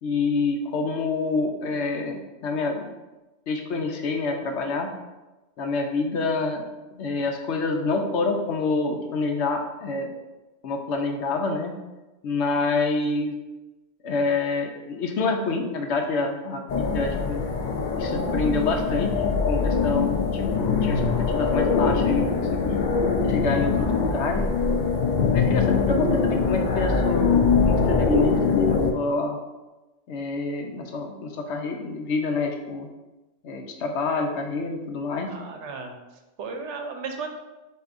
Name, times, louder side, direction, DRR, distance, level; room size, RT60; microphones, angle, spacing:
voice 1, 0.0-2.9 3.5-4.9 5.6-6.7 6.9-10.1 10.6-11.7 12.2-13.3 14.0-17.4 18.0-21.0 21.3-22.3 22.6-22.8 23.3-24.5 25.3-29.4 30.1-32.9 33.4-35.3, left 3 dB, 75° left, 3 dB, 0.9 m, -27 dB
sound 1, 16.7-28.9, left 5 dB, 55° left, 0.5 m, -23 dB
voice 2, 35.3-36.0 36.4-37.4, right 4 dB, 80° right, 4 dB, 0.9 m, -34 dB
7.9 x 2.7 x 2.5 m, 1.1 s
omnidirectional pair, 1.2 m